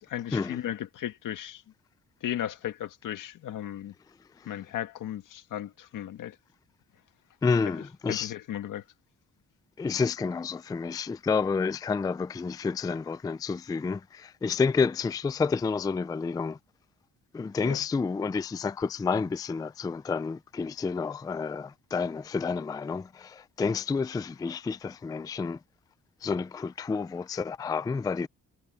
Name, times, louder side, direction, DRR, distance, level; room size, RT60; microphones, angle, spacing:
voice 1, 0.0-1.6 2.2-3.9 4.5-6.4 8.1-8.8 17.6-17.8, left 11 dB, 80° left, 1.8 m, -35 dB
voice 2, 7.4-8.3 9.8-16.6 17.3-25.6 26.2-28.3, left 5 dB, 15° left, 0.3 m, -29 dB
wide cardioid pair, 165°, 31 cm